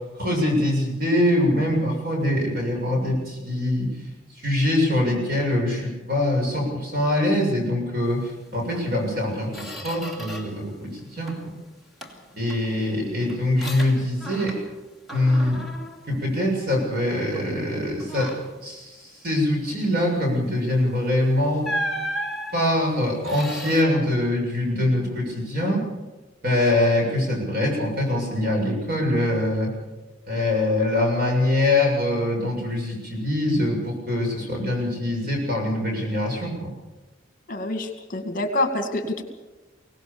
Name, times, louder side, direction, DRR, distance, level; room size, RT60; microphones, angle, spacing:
voice 1, 0.2-3.9 4.4-11.3 12.3-14.6 15.1-15.6 16.1-18.3 18.6-21.7 22.5-25.8 26.4-29.7 30.3-36.7, left 1 dB, 50° right, 0 dB, 7.2 m, -23 dB
Squeak, 8.7-8.9 9.2-10.7 11.0-11.6 12.0-14.8 15.1-16.9 17.3-17.6 18.0-18.6 20.7-20.9 21.6-23.8, equal, ahead, 2.7 m, -35 dB
voice 2, 37.5-39.2, left 1 dB, 45° left, 7 dB, 2.1 m, -27 dB
24.0 x 18.0 x 7.0 m, 1.1 s
head